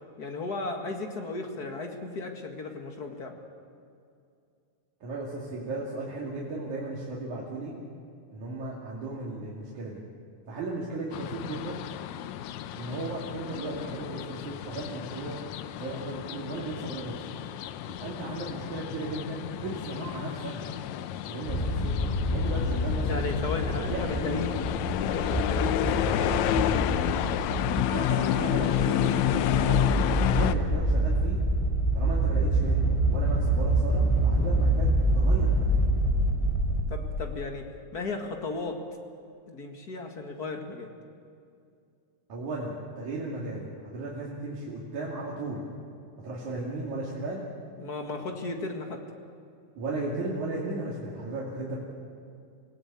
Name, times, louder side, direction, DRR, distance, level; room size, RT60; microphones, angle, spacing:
voice 1, 0.2-3.4 23.1-24.5 25.1-26.5 36.9-38.8 39.5-40.9 47.8-49.0, left 3 dB, 35° left, 4 dB, 2.0 m, -35 dB
voice 2, 5.0-7.7 8.3-10.0 10.5-11.8 12.8-15.4 15.8-17.2 17.9-20.7 21.3-21.9 22.3-23.3 23.9-24.4 27.9-29.2 29.5-31.4 31.9-35.8 42.3-45.6 46.2-47.4 49.8-51.8, right 2 dB, 70° right, -5 dB, 4.0 m, -35 dB
sound 1, 11.1-30.5, left 12 dB, 75° left, 1.9 m, -30 dB
sound 2, 21.5-36.8, right 1 dB, 10° left, 3.4 m, -26 dB
26.0 x 17.5 x 8.5 m, 2.5 s
omnidirectional pair, 3.5 m